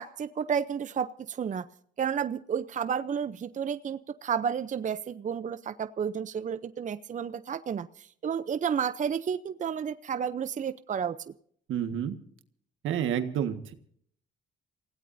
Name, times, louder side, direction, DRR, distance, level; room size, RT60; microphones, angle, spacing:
voice 1, 0.0-1.6 2.0-11.2, right 7 dB, 40° right, 12 dB, 0.7 m, -31 dB
voice 2, 11.7-12.1 12.8-13.7, right 9 dB, 80° right, 8 dB, 1.7 m, -29 dB
28.5 x 17.0 x 2.7 m, 0.63 s
cardioid pair, 90°, 20 cm